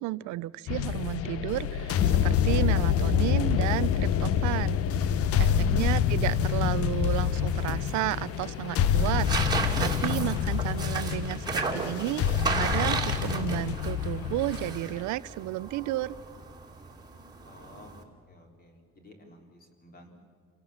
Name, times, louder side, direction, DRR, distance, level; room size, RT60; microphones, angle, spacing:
voice 1, 0.0-4.8 5.4-16.2, right 17 dB, 75° right, 17 dB, 0.6 m, -32 dB
sound 1, 0.7-15.0, left 8 dB, 55° left, 0.8 m, -27 dB
voice 2, 5.5-6.2 17.4-20.1, left 2 dB, 30° left, 3 dB, 3.8 m, -45 dB
sound 2, 5.8-18.0, right 4 dB, 15° right, 2.5 m, -35 dB
28.0 x 17.5 x 7.2 m, 2.2 s
cardioid pair, 165°, 29 cm